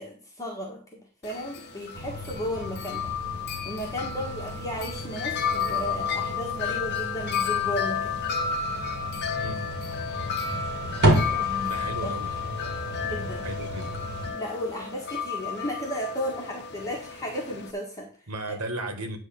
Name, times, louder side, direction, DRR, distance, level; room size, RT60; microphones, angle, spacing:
voice 1, 0.0-3.1 3.6-8.2 11.1-12.1 13.0-13.5 14.3-18.1, equal, 15° left, -2 dB, 1.8 m, -34 dB
Wind chime, 1.2-17.7, left 6 dB, 50° left, 1.1 m, -32 dB
sound 1, 1.9-14.3, equal, 50° right, 2.6 m, -32 dB
voice 2, 9.4-9.7 11.6-12.4 13.4-13.9 18.3-19.2, right 2 dB, 90° right, 5 dB, 1.8 m, -35 dB
10.5 x 3.6 x 7.2 m, 0.39 s
head